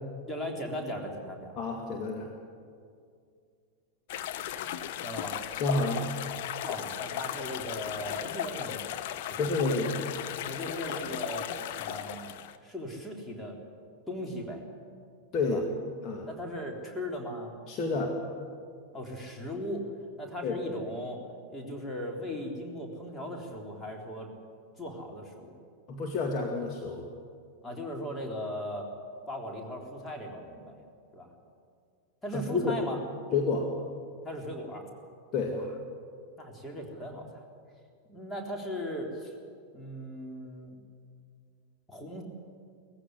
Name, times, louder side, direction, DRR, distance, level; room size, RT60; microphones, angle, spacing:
voice 1, 0.3-1.6 5.0-5.4 6.6-8.9 9.3-9.5 10.4-11.5 11.7-12.4 12.6-13.6 14.1-14.7 15.4-15.6 16.3-17.5 18.9-19.9 20.2-21.2 21.5-24.3 24.8-25.5 27.6-28.9 29.2-30.8 31.1-31.3 32.2-33.0 34.2-34.9 35.5-35.6 36.4-37.4 38.1-39.3 39.7-40.8 41.9-42.2, left 1 dB, 10° left, 0 dB, 3.6 m, -38 dB
voice 2, 1.6-2.3 5.5-6.1 9.4-10.0 15.3-15.6 16.0-16.3 17.7-18.2 20.4-20.6 25.9-27.1 32.3-32.8 33.3-33.7 35.3-35.6, left 3 dB, 35° left, 1 dB, 2.1 m, -29 dB
sound 1, 4.1-12.6, left 11 dB, 50° left, 0.9 m, -36 dB
19.0 x 15.5 x 9.7 m, 2.3 s
figure-of-eight pair, 90°, 0 cm